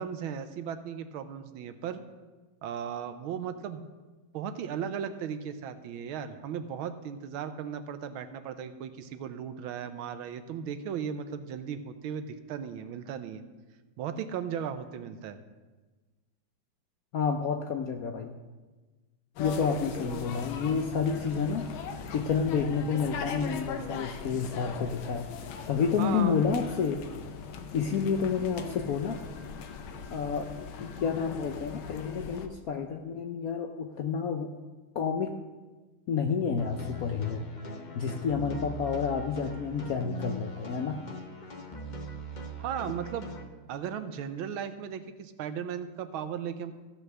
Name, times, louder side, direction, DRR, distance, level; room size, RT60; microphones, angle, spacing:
voice 1, 0.0-2.0 2.6-3.8 4.3-13.4 14.0-15.4 26.0-26.4 42.6-43.3 43.7-46.7, right 8 dB, 85° right, 10 dB, 1.6 m, -36 dB
voice 2, 17.1-18.3 19.4-21.7 22.1-25.3 25.7-27.0 27.7-29.2 30.1-30.5 30.8-34.5 34.9-35.3 36.1-37.5 37.9-41.0, left 6 dB, 70° left, 5 dB, 0.9 m, -29 dB
sound 1, 19.4-32.5, left 6 dB, 85° left, 1.6 m, -40 dB
sound 2, 36.6-43.4, left 1 dB, 40° left, 0.6 m, -41 dB
15.0 x 5.5 x 6.1 m, 1.3 s
omnidirectional pair, 2.2 m